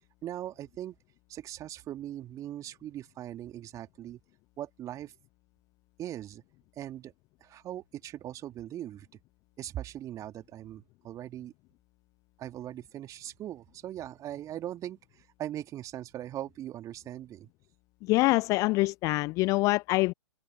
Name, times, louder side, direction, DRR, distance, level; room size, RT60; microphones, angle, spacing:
voice 1, 0.2-1.0 1.3-4.2 4.6-5.1 6.0-6.4 6.8-7.1 7.4-9.1 9.6-11.5 12.4-17.5, right 12 dB, 20° right, 2.4 m, -40 dB
voice 2, 18.0-20.1, left 22 dB, 20° left, 0.4 m, -25 dB
open air
figure-of-eight pair, 115°, 15 cm